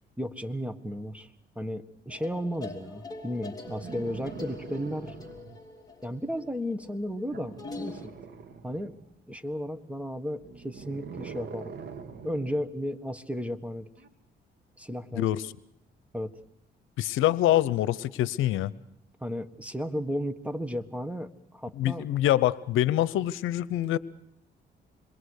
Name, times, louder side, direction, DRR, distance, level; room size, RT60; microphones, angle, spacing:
voice 1, 0.2-1.3 1.5-5.1 6.0-8.1 8.6-8.9 9.3-11.8 12.2-13.9 14.8-15.3 16.1-16.3 19.2-22.0, equal, 5° right, 10 dB, 1.5 m, -34 dB
sound 1, 2.1-8.1, left 3 dB, 20° left, 3.2 m, -44 dB
sound 2, 3.6-5.6 7.3-9.0 10.3-12.6 14.0-14.1, right 5 dB, 60° right, 2.0 m, -43 dB
voice 2, 17.0-18.7 21.8-24.0, left 13 dB, 90° left, 18 dB, 0.8 m, -25 dB
27.0 x 21.5 x 6.6 m, 0.78 s
cardioid pair, 90°, 20 cm